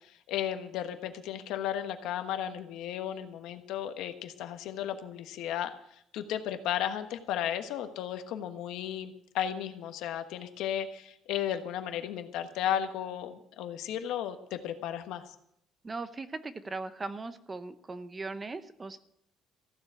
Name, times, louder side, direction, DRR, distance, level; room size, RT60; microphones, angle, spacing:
voice 1, 0.3-5.7 6.1-15.2, left 10 dB, 75° left, 8 dB, 1.3 m, -34 dB
voice 2, 15.8-19.0, right 3 dB, 20° right, 12 dB, 0.7 m, -39 dB
15.0 x 7.2 x 8.0 m, 0.74 s
cardioid pair, 155°, 0 cm